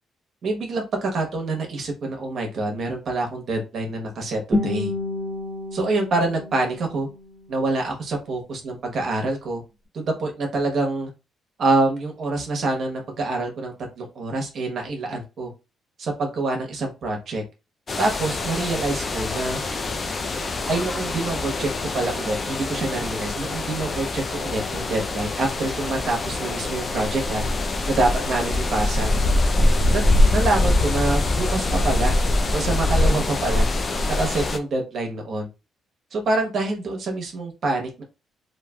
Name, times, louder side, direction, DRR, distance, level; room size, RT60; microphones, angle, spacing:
voice 1, 0.4-4.9 5.7-7.1 7.5-9.6 9.9-11.1 11.6-15.5 16.0-17.4 18.0-19.6 20.4-21.7 21.9-27.4 27.9-29.1 29.9-30.0 30.3-32.1 32.5-33.7 34.1-35.5 36.1-38.0, right 2 dB, 60° right, 2 dB, 0.9 m, -26 dB
Guitar, 4.5-7.5, left 2 dB, 30° right, 1.1 m, -29 dB
sound 1, 17.9-34.6, left 2 dB, 35° left, 0.5 m, -24 dB
3.1 x 2.6 x 2.3 m, 0.28 s
cardioid pair, 90°, 0 cm